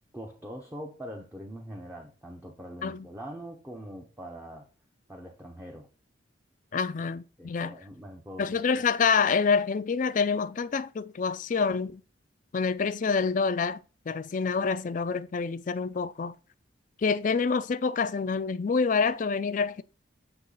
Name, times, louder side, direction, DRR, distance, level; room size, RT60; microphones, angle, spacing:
voice 1, 0.1-4.7 5.1-5.9 7.0-7.1 7.4-8.6, equal, 10° right, 0.7 m, -43 dB
voice 2, 6.7-7.7 8.4-12.0 12.5-13.8 14.1-16.3 17.0-19.8, left 5 dB, 45° left, 0.4 m, -27 dB
8.0 x 3.1 x 3.9 m
head